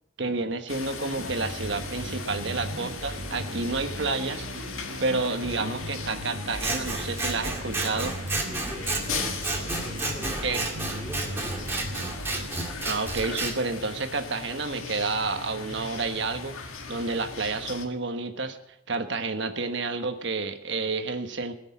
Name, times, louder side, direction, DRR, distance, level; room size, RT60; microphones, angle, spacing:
voice 1, 0.2-4.5 5.0-8.1 10.4-10.6 12.8-16.6 16.9-18.6 18.9-21.5, right 3 dB, 60° right, 7 dB, 1.3 m, -30 dB
sound 1, 0.7-17.9, left 4 dB, 90° left, 1.7 m, -38 dB
sound 2, 1.2-12.5, right 1 dB, 80° right, 1.3 m, -38 dB
Scissors, 6.6-13.5, right 2 dB, 10° right, 2.1 m, -31 dB
voice 2, 8.4-11.7, equal, 10° left, -4 dB, 3.3 m, -42 dB
18.5 x 6.7 x 9.4 m, 0.83 s
head